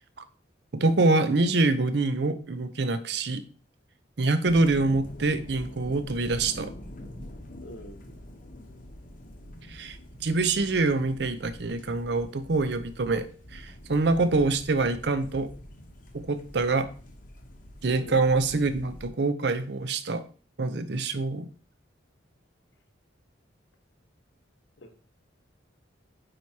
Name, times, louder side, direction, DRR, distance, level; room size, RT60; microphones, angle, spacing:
voice 1, 0.7-3.4 4.2-6.7 9.7-10.0 10.2-13.2 13.5-15.5 16.1-16.9 17.8-20.2 20.6-21.5, right 3 dB, 60° right, 11 dB, 0.6 m, -25 dB
sound 1, 4.5-19.1, left 1 dB, 45° left, 0.9 m, -45 dB
voice 2, 7.6-8.0 18.0-18.2 24.8-24.9, left 1 dB, 75° left, 5 dB, 1.1 m, -44 dB
8.8 x 4.7 x 2.8 m, 0.39 s
head